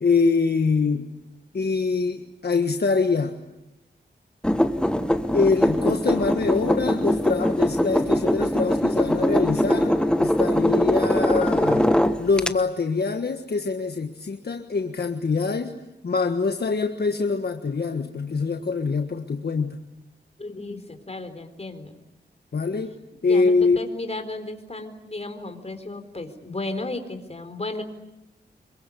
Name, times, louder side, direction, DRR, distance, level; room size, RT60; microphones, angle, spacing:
voice 1, 0.0-1.1 1.5-3.4 5.3-11.9 12.2-15.8 16.0-19.8 22.5-22.9 23.2-23.8, left 4 dB, 60° left, 5 dB, 1.5 m, -24 dB
sound 1, 4.4-12.5, equal, 5° left, 1.3 m, -22 dB
voice 2, 20.4-22.0 23.2-27.8, left 2 dB, 35° left, 7 dB, 4.0 m, -34 dB
27.0 x 23.5 x 8.5 m, 0.93 s
wide cardioid pair, 75°, 18 cm